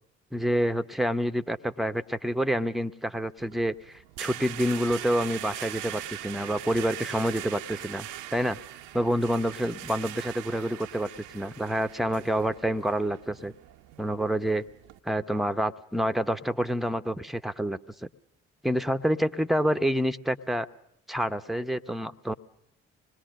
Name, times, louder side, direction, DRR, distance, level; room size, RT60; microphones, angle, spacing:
voice 1, 0.3-8.6 8.9-13.5 14.0-14.6 15.0-18.1 18.6-20.7 21.1-22.3, equal, ahead, 10 dB, 1.0 m, -28 dB
sound 1, 3.4-15.0, right 13 dB, 70° right, 0.9 m, -41 dB
26.0 x 20.5 x 6.5 m, 0.77 s
figure-of-eight pair, 40°, 35 cm